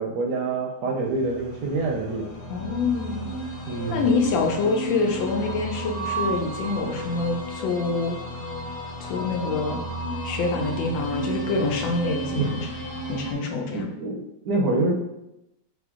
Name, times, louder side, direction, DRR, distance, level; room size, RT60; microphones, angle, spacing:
voice 1, 0.0-2.3 3.7-4.1 12.4-12.5 13.7-14.9, right 3 dB, 70° right, 1 dB, 1.1 m, -26 dB
sound 1, 1.0-13.3, right 2 dB, 40° left, 1.0 m, -33 dB
voice 2, 2.5-3.3 3.9-8.2 9.0-9.8 10.2-12.7 13.1-13.9, left 3 dB, 80° left, 2 dB, 1.4 m, -26 dB
3.6 x 3.3 x 3.6 m, 0.88 s
omnidirectional pair, 2.1 m